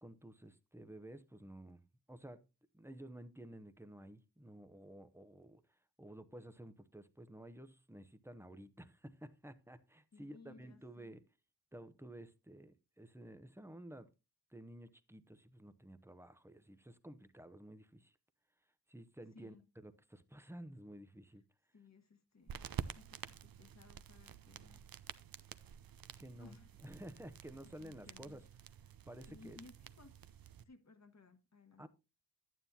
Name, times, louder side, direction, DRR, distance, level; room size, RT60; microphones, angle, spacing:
voice 1, 0.0-1.8 2.1-2.5 2.7-11.2 11.7-14.1 14.5-18.2 18.9-21.4 26.2-26.6 26.8-28.4 29.1-29.6 31.8-31.9, right 1 dB, 5° right, 0.8 m, -53 dB
voice 2, 10.1-11.2 19.3-19.7 21.7-24.9 26.4-26.7 27.6-28.4 29.3-30.1 30.6-31.8, left 4 dB, 40° left, 1.4 m, -61 dB
sound 1, 22.5-30.6, right 9 dB, 60° right, 0.6 m, -50 dB
11.5 x 9.2 x 2.8 m
wide cardioid pair, 90°, 40 cm